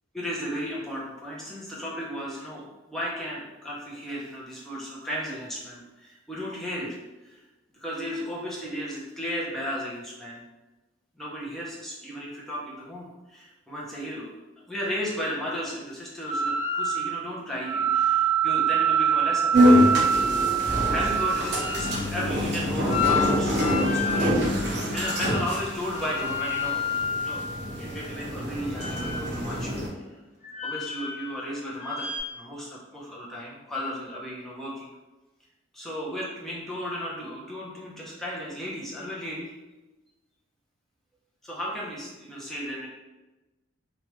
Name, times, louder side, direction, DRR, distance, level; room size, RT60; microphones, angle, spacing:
voice 1, 0.1-7.0 7.2-7.4 7.8-10.4 11.2-14.3 14.7-19.8 20.9-26.8 27.2-27.5 27.8-30.0 30.6-34.9 35.7-39.5 41.4-42.9, equal, ahead, -6 dB, 0.7 m, -34 dB
sound 1, 16.3-17.2 17.6-22.0 22.9-24.3 24.9-25.5 25.8-28.1 28.7-29.5 30.4-31.4 31.8-32.2, right 3 dB, 45° left, 0.7 m, -27 dB
sound 2, 19.5-29.9, equal, 55° right, 0.7 m, -25 dB
3.1 x 2.4 x 3.1 m, 1.1 s
head